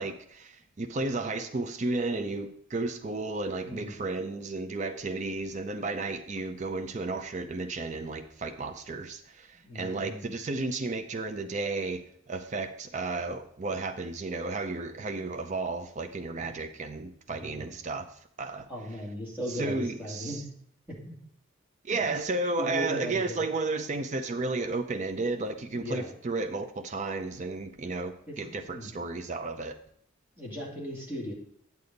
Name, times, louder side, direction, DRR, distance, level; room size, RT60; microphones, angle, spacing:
voice 1, 0.0-18.7 19.5-20.4 21.8-29.8, right 3 dB, 35° right, 6 dB, 0.5 m, -33 dB
voice 2, 3.6-4.0 9.6-10.4 16.4-16.5 17.3-17.7 18.7-20.4 20.9-21.2 21.9-22.2 22.6-23.5 25.7-26.1 28.3-28.4 28.7-29.0 30.4-31.3, equal, 10° right, -4 dB, 2.2 m, -37 dB
9.4 x 6.9 x 3.9 m, 0.65 s
head